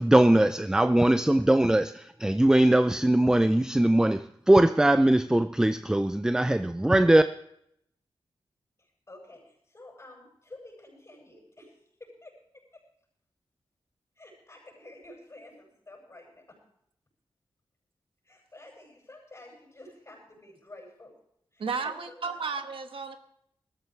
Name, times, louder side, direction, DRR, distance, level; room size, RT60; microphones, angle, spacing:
voice 1, 0.0-7.2, right 1 dB, 5° right, 0.4 m, -21 dB
voice 2, 8.8-12.8 14.2-16.6 18.2-21.1 21.5-22.4, left 2 dB, 30° left, 7.7 m, -50 dB
voice 3, 21.6-23.2, right 5 dB, 70° right, 1.2 m, -33 dB
21.0 x 14.0 x 3.3 m
wide cardioid pair, 125°, 9 cm